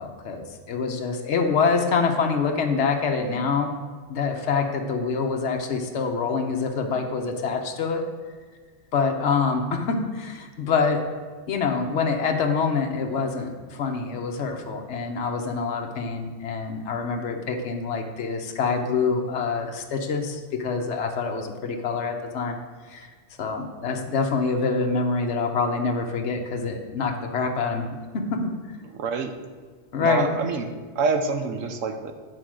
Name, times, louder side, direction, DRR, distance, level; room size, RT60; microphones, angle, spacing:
voice 1, 0.0-3.7 4.1-8.0 8.9-11.0 11.5-22.6 22.9-23.1 23.4-27.9 28.1-28.5 29.9-30.4, left 4 dB, 65° left, 3 dB, 1.1 m, -26 dB
voice 2, 28.9-29.3 30.0-30.7 30.9-32.1, right 4 dB, 90° right, 6 dB, 1.2 m, -26 dB
9.5 x 4.3 x 6.2 m, 1.5 s
omnidirectional pair, 1.3 m